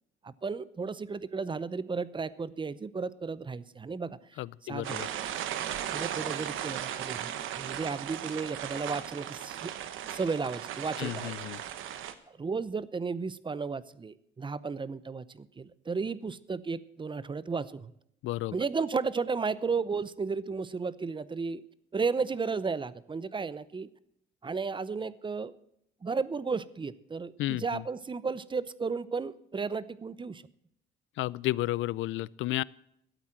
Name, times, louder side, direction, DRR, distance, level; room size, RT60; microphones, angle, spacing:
voice 1, 0.2-4.2 4.6-5.0 5.9-7.3 7.6-9.7 10.1-11.3 12.3-17.9 18.5-21.6 21.9-23.9 24.4-25.5 26.0-30.4, right 4 dB, 25° right, 18 dB, 0.6 m, -33 dB
voice 2, 4.4-5.1 11.0-11.6 18.2-18.5 27.4-27.8 31.2-32.6, left 16 dB, 80° left, 23 dB, 0.4 m, -32 dB
sound 1, 4.8-12.1, right 10 dB, 85° right, 1.0 m, -37 dB
12.5 x 8.7 x 7.6 m, 0.74 s
cardioid pair, 90°, 20 cm